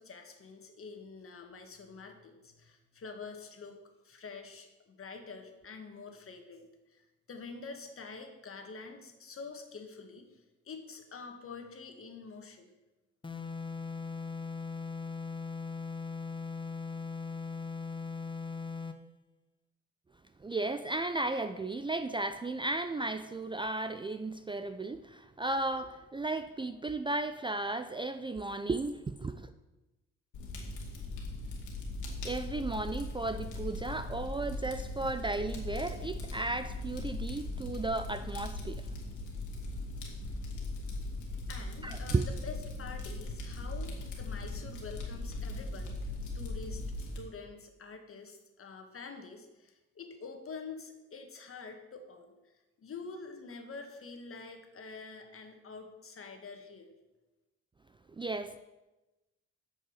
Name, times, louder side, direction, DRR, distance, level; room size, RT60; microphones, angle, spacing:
voice 1, 0.0-3.8 4.0-12.7 41.5-46.0 46.3-52.5 52.8-56.9, left 4 dB, 45° left, 4 dB, 1.8 m, -47 dB
sound 1, 13.2-19.1, left 5 dB, 15° left, 0.7 m, -39 dB
voice 2, 20.4-29.5 32.2-38.9 41.8-42.3 58.2-58.6, right 2 dB, 15° right, 10 dB, 0.4 m, -34 dB
Fire, 30.3-47.2, left 2 dB, 85° left, 2.3 m, -39 dB
8.6 x 5.4 x 7.9 m, 1.0 s
cardioid pair, 90°, 30 cm